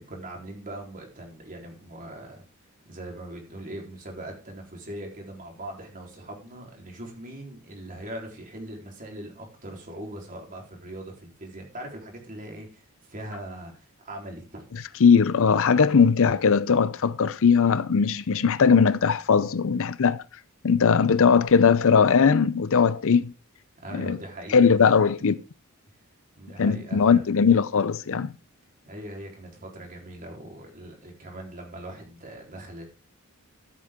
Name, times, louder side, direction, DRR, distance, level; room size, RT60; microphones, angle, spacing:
voice 1, 0.0-2.4 2.9-14.6 23.8-25.0 26.4-27.3 28.8-32.8, right 1 dB, 40° right, 3.9 m, -40 dB
voice 2, 15.0-20.2 20.6-23.3 23.9-24.2 24.5-25.4 26.6-28.3, left 6 dB, 65° left, 0.6 m, -19 dB
13.5 x 8.4 x 3.7 m
head